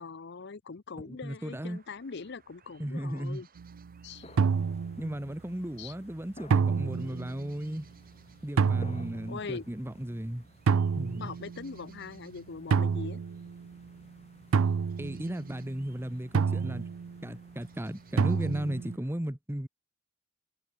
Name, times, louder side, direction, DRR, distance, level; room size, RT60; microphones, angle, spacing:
voice 1, 0.0-3.5 4.0-4.3 5.8-5.9 9.3-9.6 11.2-13.2, left 4 dB, 55° left, 0.7 m, -41 dB
voice 2, 1.0-1.8 2.8-3.4 5.0-7.9 8.4-10.4 11.0-11.4 15.0-16.9 17.2-19.7, equal, 10° right, 1.0 m, -35 dB
sound 1, 1.4-19.2, right 6 dB, 45° right, 5.7 m, -65 dB
sound 2, 3.6-3.9 4.4-5.3 6.5-7.5 8.6-9.3 10.7-11.9 12.7-13.8 14.5-15.7 16.3-17.3 18.2-19.0, right 5 dB, 80° right, 0.4 m, -28 dB
sound 3, 4.0-19.0, left 2 dB, 30° left, 5.3 m, -57 dB
head